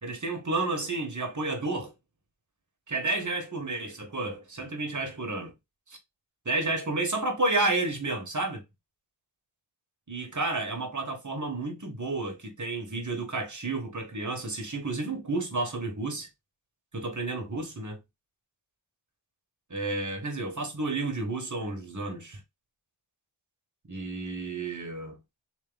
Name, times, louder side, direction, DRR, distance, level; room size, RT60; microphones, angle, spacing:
voice 1, 0.0-1.9 2.9-5.5 5.9-6.0 6.4-8.6 10.1-16.3 16.9-18.0 19.7-22.4 23.9-25.2, right 2 dB, 40° right, 1.3 m, -31 dB
3.5 x 2.9 x 3.8 m
wide cardioid pair, 50°, 46 cm